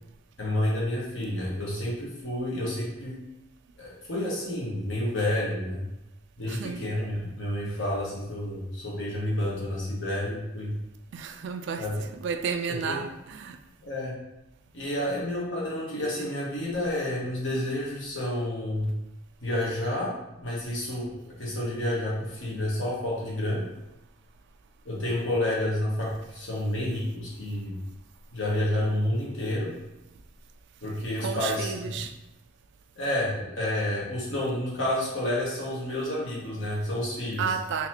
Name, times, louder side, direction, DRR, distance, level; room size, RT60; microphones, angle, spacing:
voice 1, 0.4-3.2 3.8-5.9 6.4-10.7 11.8-12.0 12.9-13.0 13.8-14.1 14.7-18.9 19.4-21.1 21.4-23.6 24.8-27.7 28.3-29.7 30.8-32.0 32.9-37.4, left 1 dB, 65° left, 1.3 m, -29 dB
voice 2, 6.5-6.9 11.1-11.9 12.1-13.6 31.2-32.1 37.4-37.9, right 6 dB, 60° right, 0.3 m, -32 dB
4.0 x 2.9 x 2.8 m
head